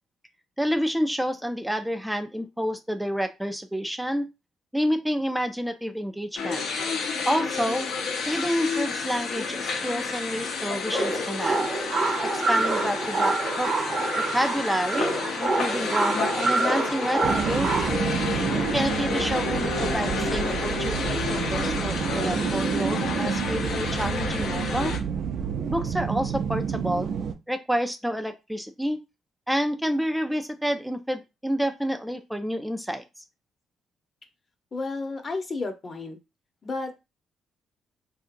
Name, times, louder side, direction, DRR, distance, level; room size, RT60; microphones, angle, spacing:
voice 1, 0.6-4.3 4.7-6.6 7.3-7.9 8.3-11.6 12.3-13.7 14.3-18.0 18.7-24.9 25.7-27.1 27.5-29.0 29.5-33.2, equal, 5° right, 6 dB, 0.4 m, -29 dB
sound 1, 6.4-25.0, left 5 dB, 75° left, 0.7 m, -30 dB
sound 2, 10.9-17.9, right 4 dB, 50° right, 0.9 m, -27 dB
sound 3, 17.2-27.3, right 7 dB, 70° right, 0.4 m, -29 dB
voice 2, 34.7-36.2 36.6-37.0, left 3 dB, 40° left, 6 dB, 0.8 m, -32 dB
3.6 x 2.8 x 2.5 m, 0.24 s
cardioid pair, 90°, 0 cm